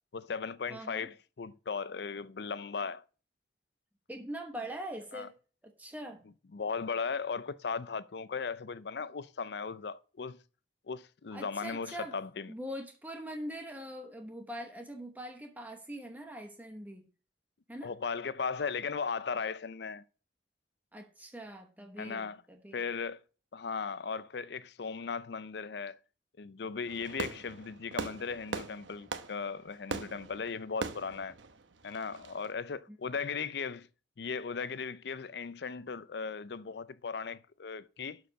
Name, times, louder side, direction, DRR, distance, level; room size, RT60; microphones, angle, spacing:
voice 1, 0.1-3.0 5.1-5.3 6.5-10.4 10.9-12.5 17.8-20.0 22.0-22.4 22.7-23.2 23.5-26.0 26.4-31.4 31.8-33.9 34.2-38.2, left 5 dB, 60° left, 0.5 m, -37 dB
voice 2, 0.7-1.1 4.1-5.3 5.6-6.2 11.3-12.2 12.5-17.1 17.7-17.9 20.9-22.8 32.9-33.0, equal, 10° right, 1.0 m, -43 dB
Fireworks, 26.9-32.5, right 4 dB, 90° right, 0.9 m, -41 dB
11.5 x 4.9 x 5.1 m
head